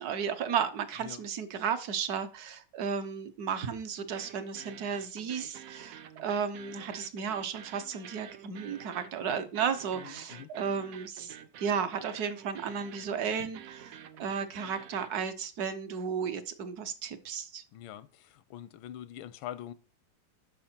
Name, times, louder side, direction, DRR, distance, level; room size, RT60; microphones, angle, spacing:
voice 1, 0.0-17.6, right 7 dB, 60° right, 1.2 m, -34 dB
sound 1, 4.1-15.3, right 9 dB, 80° right, 0.7 m, -49 dB
voice 2, 10.0-10.5 17.7-19.7, left 11 dB, 85° left, 1.4 m, -44 dB
8.6 x 6.0 x 4.3 m
omnidirectional pair, 2.2 m